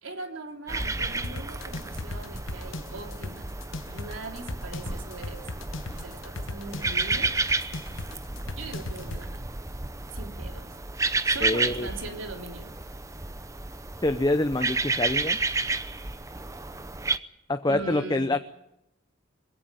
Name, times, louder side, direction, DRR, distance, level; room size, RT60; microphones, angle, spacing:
voice 1, 0.0-3.5 3.9-5.4 6.0-7.3 8.5-9.4 10.1-10.7 11.2-12.7 17.7-18.3, right 3 dB, 85° right, 4 dB, 3.2 m, -40 dB
sound 1, 0.7-17.2, right 3 dB, 15° right, 0.8 m, -31 dB
sound 2, 1.2-9.2, left 2 dB, 80° left, 1.2 m, -37 dB
voice 2, 11.4-11.9 14.0-15.4 17.5-18.4, left 2 dB, 20° left, 8 dB, 0.8 m, -26 dB
21.5 x 16.5 x 9.0 m, 0.82 s
head